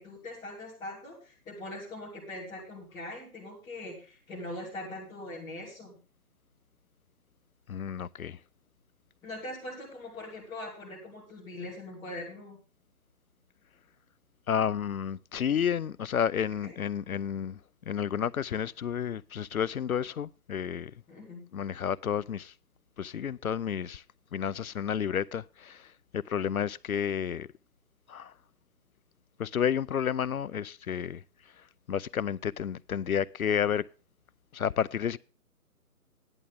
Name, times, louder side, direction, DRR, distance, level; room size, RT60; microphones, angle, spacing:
voice 1, 0.0-6.0 9.2-12.6 16.6-16.7 21.1-21.4, left 1 dB, 10° left, 3.1 m, -41 dB
voice 2, 7.7-8.4 14.5-17.6 17.9-20.9 21.5-22.5 23.0-24.0 24.3-27.5 28.1-28.3 29.4-31.2 31.9-33.9 34.5-35.2, left 8 dB, 65° left, 0.5 m, -31 dB
13.5 x 11.0 x 3.5 m
figure-of-eight pair, 150°, 45 cm